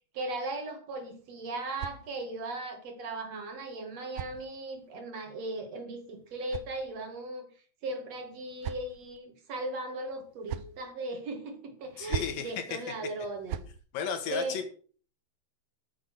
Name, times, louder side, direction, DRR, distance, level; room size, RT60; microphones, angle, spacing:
voice 1, 0.1-7.5 7.8-13.6 14.3-14.6, right 2 dB, 55° right, 5 dB, 2.8 m, -37 dB
sound 1, 0.9-2.5 3.5-5.0 6.0-7.3 8.1-9.2 10.1-10.8 11.8-12.5 13.2-13.8, right 11 dB, 85° right, 2.3 m, -42 dB
voice 2, 12.0-12.8 13.9-14.7, left 7 dB, 85° left, 8 dB, 3.3 m, -34 dB
9.3 x 8.2 x 6.4 m, 0.42 s
omnidirectional pair, 3.9 m